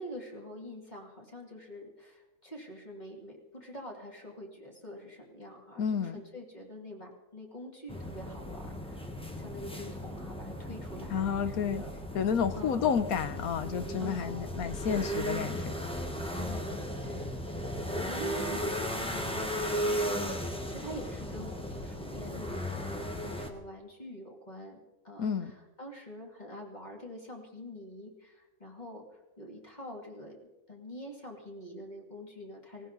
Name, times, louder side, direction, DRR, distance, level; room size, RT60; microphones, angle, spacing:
voice 1, 0.0-11.9 12.6-13.0 14.0-14.5 16.3-24.8 25.0-29.0 29.4-30.4 30.7-32.9, equal, 25° left, -1 dB, 2.7 m, -45 dB
voice 2, 5.8-6.2 11.1-11.8 12.1-15.8 25.2-25.5, left 7 dB, 65° left, 11 dB, 1.3 m, -30 dB
sound 1, 7.9-23.5, equal, 5° left, 1.1 m, -36 dB
19.0 x 17.5 x 4.0 m, 1.1 s
omnidirectional pair, 1.8 m